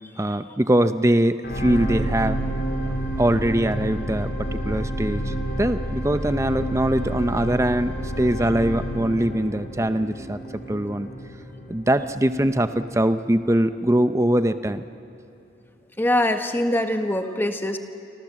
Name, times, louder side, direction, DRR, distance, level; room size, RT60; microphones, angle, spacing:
voice 1, 0.2-2.4 3.2-10.4 10.7-11.1 11.7-14.8, right 1 dB, 15° right, 10 dB, 0.8 m, -22 dB
sound 1, 1.4-13.8 14.4-14.5, right 1 dB, 65° left, 4.6 m, -30 dB
voice 2, 16.0-17.8, left 1 dB, 10° left, 6 dB, 1.4 m, -23 dB
28.5 x 25.5 x 7.6 m, 2.7 s
head